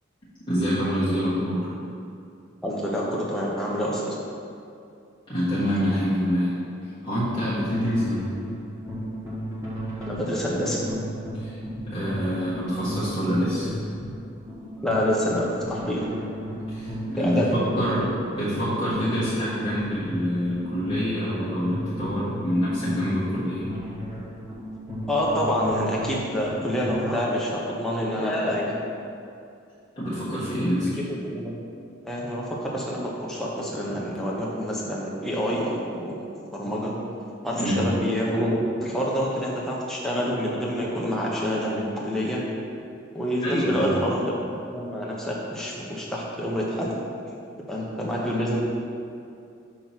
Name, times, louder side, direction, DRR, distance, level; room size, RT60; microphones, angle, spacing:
voice 1, 0.5-1.7 5.3-6.6 7.0-8.3 11.4-11.6 11.9-13.7 16.7-23.7 30.0-31.0 37.6-37.8 43.4-44.0, equal, 25° left, -13 dB, 1.1 m, -26 dB
voice 2, 2.6-4.2 10.1-10.9 14.8-16.1 17.2-17.8 25.1-28.8 31.1-31.5 32.0-36.9 37.4-42.4 43.1-44.2 44.5-47.0 47.7-48.6, equal, ahead, -5 dB, 0.7 m, -27 dB
sound 1, 7.1-27.1, equal, 15° right, 1.1 m, -35 dB
5.6 x 3.0 x 5.5 m, 2.5 s
head